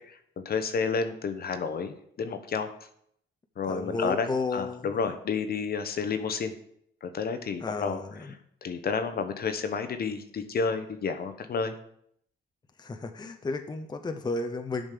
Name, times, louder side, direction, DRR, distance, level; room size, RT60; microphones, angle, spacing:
voice 1, 0.4-2.7 3.6-6.5 7.0-8.0 8.6-11.7, left 5 dB, 50° left, 9 dB, 0.9 m, -30 dB
voice 2, 3.7-5.1 7.6-8.4 12.8-14.9, left 3 dB, 20° left, 5 dB, 0.8 m, -33 dB
7.2 x 5.2 x 6.7 m, 0.70 s
cardioid pair, 90°, 20 cm